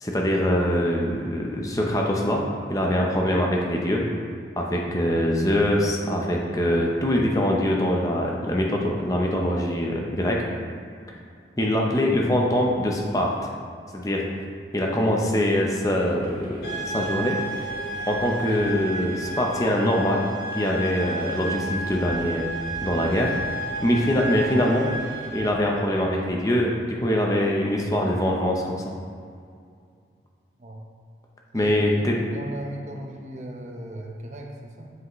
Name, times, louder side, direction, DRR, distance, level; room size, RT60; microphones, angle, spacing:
voice 1, 0.0-2.4 2.7-4.0 4.6-10.4 11.6-13.5 13.9-14.3 14.7-17.4 18.1-20.2 20.6-22.4 22.8-23.3 23.8-24.9 25.3-28.8 31.5-32.3, left 1 dB, 20° left, -1 dB, 0.6 m, -23 dB
sound 1, 15.8-25.6, right 1 dB, 65° right, 1.4 m, -44 dB
sound 2, 16.6-25.5, right 1 dB, 70° left, 1.4 m, -32 dB
voice 2, 31.5-34.9, right 1 dB, 40° right, 0 dB, 0.7 m, -38 dB
7.7 x 5.5 x 3.1 m, 2.3 s
head